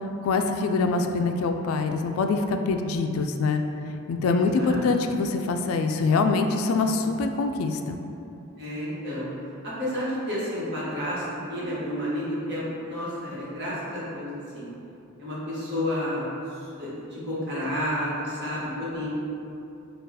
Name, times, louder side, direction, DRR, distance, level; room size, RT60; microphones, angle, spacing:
voice 1, 0.2-3.6 4.1-8.0, left 4 dB, 70° left, 5 dB, 0.3 m, -24 dB
voice 2, 4.2-4.8 8.6-9.3 9.6-11.2 11.5-14.7 15.2-16.3 16.7-19.1, left 1 dB, 50° right, -8 dB, 1.3 m, -31 dB
4.4 x 2.4 x 4.8 m, 2.7 s
head